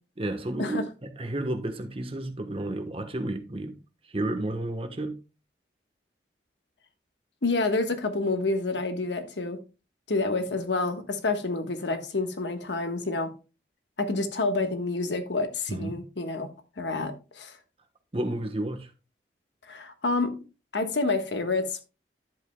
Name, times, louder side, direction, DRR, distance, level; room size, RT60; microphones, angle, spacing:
voice 1, 0.2-3.7 4.1-5.2 15.7-16.0 18.1-18.9, right 1 dB, 30° right, 1.1 m, -31 dB
voice 2, 7.4-9.6 10.1-13.3 14.0-16.5 16.8-17.5 19.7-20.3 20.7-21.8, left 3 dB, 90° left, 1.3 m, -28 dB
11.0 x 7.9 x 2.2 m
head